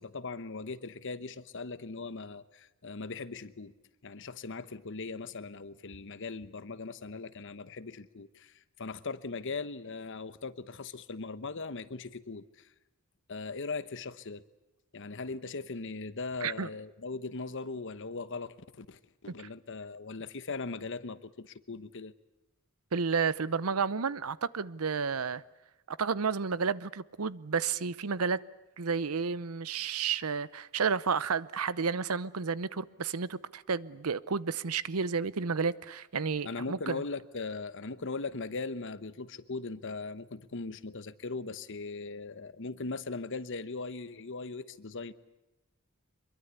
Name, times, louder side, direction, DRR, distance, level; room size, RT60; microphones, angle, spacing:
voice 1, 0.0-3.7 4.0-12.7 13.3-14.4 14.9-22.1 36.4-45.1, left 3 dB, 60° left, 1.0 m, -39 dB
voice 2, 22.9-25.4 25.9-28.4 28.8-37.0, right 5 dB, 90° right, 0.8 m, -31 dB
24.5 x 22.5 x 8.3 m
head